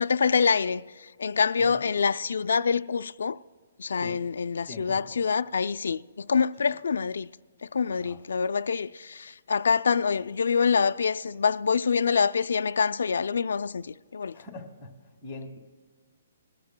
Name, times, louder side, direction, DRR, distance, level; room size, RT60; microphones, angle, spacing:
voice 1, 0.0-3.4 3.8-7.3 7.6-14.4, left 5 dB, 80° left, 0.3 m, -26 dB
voice 2, 4.7-5.2 6.6-6.8 8.0-8.2 14.3-14.9 15.2-15.6, left 2 dB, 15° left, 1.8 m, -42 dB
21.0 x 14.0 x 2.2 m
hypercardioid pair, 165°, 0 cm